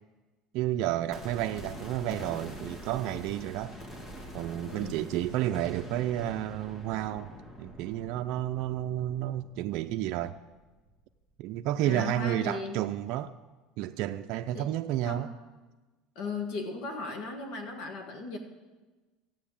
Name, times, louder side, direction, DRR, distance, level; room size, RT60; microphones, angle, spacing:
voice 1, 0.5-3.8 4.3-10.4 11.4-13.3 13.8-15.3, right 13 dB, 60° right, 6 dB, 0.5 m, -31 dB
sound 1, 1.1-11.1 11.4-11.5, equal, 30° left, 2.3 m, -45 dB
voice 2, 4.7-5.1 11.8-12.8 14.5-14.7 15.0-15.3 16.2-18.4, left 4 dB, 65° left, 5 dB, 1.8 m, -37 dB
13.5 x 9.2 x 8.7 m, 1.2 s
supercardioid pair, 130°, 0 cm